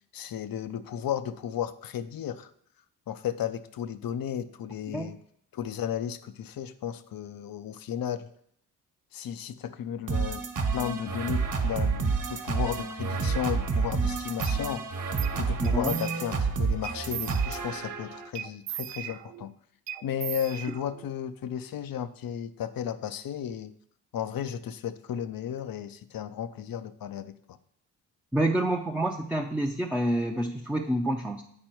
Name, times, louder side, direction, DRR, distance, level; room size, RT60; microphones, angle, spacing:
voice 1, 0.1-2.5 3.1-5.2 5.5-8.3 9.1-10.4 10.7-14.9 15.3-19.5 20.0-23.7 24.1-27.6, left 9 dB, 55° left, 13 dB, 0.7 m, -34 dB
sound 1, 10.1-18.3, right 4 dB, 45° right, 1.4 m, -29 dB
sound 2, 14.4-14.6 15.2-15.4 15.6-16.5 16.8-17.8 18.3-19.5 19.9-21.1, right 12 dB, 75° right, 0.5 m, -38 dB
voice 2, 15.6-15.9 28.3-31.4, right 1 dB, 5° right, 1 dB, 0.7 m, -28 dB
8.8 x 4.3 x 4.5 m, 0.69 s
supercardioid pair, 55°, 43 cm